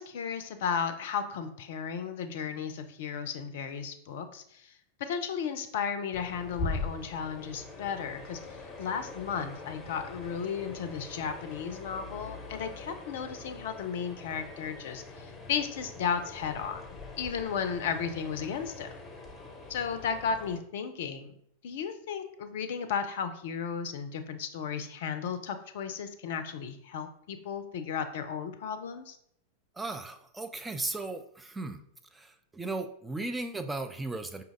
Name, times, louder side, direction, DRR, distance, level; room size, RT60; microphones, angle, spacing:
voice 1, 0.0-4.7 5.0-8.4 8.8-16.8 17.2-18.9 19.7-21.4 21.6-29.2, left 7 dB, 55° left, 9 dB, 0.5 m, -34 dB
sound 1, 6.1-20.6, left 3 dB, 20° left, 0.8 m, -42 dB
voice 2, 29.8-31.8 32.1-34.4, right 2 dB, 10° right, 7 dB, 0.4 m, -36 dB
5.0 x 2.8 x 3.6 m, 0.68 s
figure-of-eight pair, 90°, 0 cm